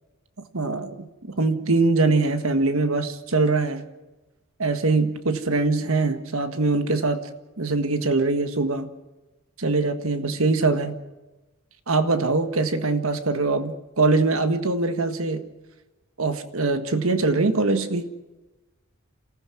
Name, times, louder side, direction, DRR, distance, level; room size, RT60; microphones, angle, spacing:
voice 1, 0.5-1.1 1.4-3.8 4.6-7.3 7.6-8.9 9.6-11.0 11.9-15.4 16.2-18.1, right 3 dB, 70° right, 9 dB, 1.6 m, -23 dB
28.0 x 15.0 x 6.2 m, 1.1 s
head